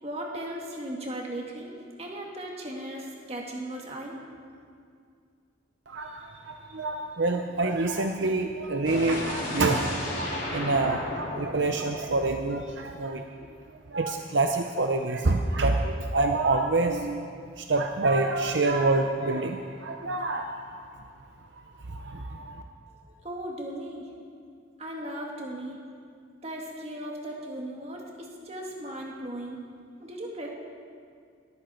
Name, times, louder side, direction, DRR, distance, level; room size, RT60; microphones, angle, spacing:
voice 1, 0.0-1.7 2.0-4.2 22.9-24.1 24.8-25.8 26.4-29.6 30.0-30.5, right 1 dB, 30° right, -1 dB, 2.2 m, -37 dB
voice 2, 5.9-13.4 13.9-17.3 17.6-21.1 21.5-21.6 21.9-22.6, right 2 dB, 65° right, 4 dB, 0.8 m, -27 dB
sound 1, 8.8-12.8, left 1 dB, 40° left, 3.7 m, -35 dB
21.0 x 14.5 x 4.5 m, 2.2 s
head